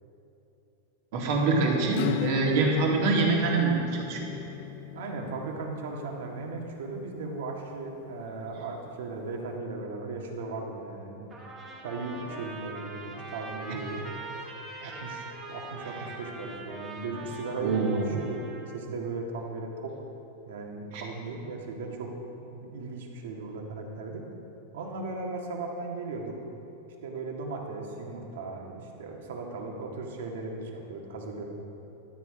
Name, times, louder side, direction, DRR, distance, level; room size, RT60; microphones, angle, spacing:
voice 1, 1.1-4.3 14.8-14.9 17.6-18.1 20.9-21.0, right 3 dB, 50° right, -1 dB, 2.0 m, -25 dB
Acoustic guitar / Strum, 1.9-8.2, left 13 dB, 50° left, 0.3 m, -37 dB
voice 2, 4.9-11.4 11.8-14.0 14.8-18.4 18.7-19.9 20.5-22.1 22.4-24.2 24.7-26.4 27.0-31.4, right 3 dB, 75° right, 1 dB, 1.7 m, -37 dB
Trumpet, 11.3-18.8, right 2 dB, 15° right, 1.6 m, -42 dB
12.5 x 8.8 x 4.8 m, 3.0 s
supercardioid pair, 170°, 0 cm